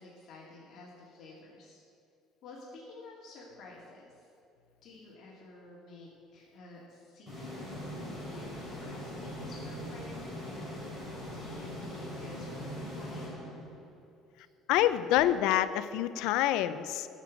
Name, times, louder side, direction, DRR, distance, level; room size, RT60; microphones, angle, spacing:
voice 1, 0.0-1.8 2.4-4.3 4.8-13.3, left 2 dB, 45° left, -5 dB, 2.4 m, -51 dB
sound 1, 7.3-14.0, equal, 10° right, 3.7 m, -41 dB
voice 2, 14.7-17.1, left 12 dB, 75° left, 13 dB, 0.6 m, -27 dB
14.0 x 6.9 x 8.4 m, 2.6 s
cardioid pair, 170°, 0 cm